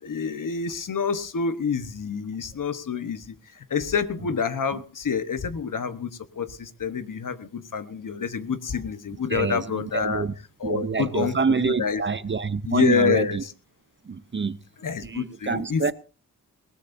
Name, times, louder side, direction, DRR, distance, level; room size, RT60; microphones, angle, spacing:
voice 1, 0.0-10.3 10.6-12.0 12.7-13.5 14.8-15.9, left 6 dB, 65° left, 1.2 m, -28 dB
voice 2, 9.3-10.3 10.6-13.4 14.0-14.6 15.0-15.9, right 5 dB, 35° right, 0.6 m, -26 dB
20.0 x 18.5 x 2.7 m
wide cardioid pair, 115°, 34 cm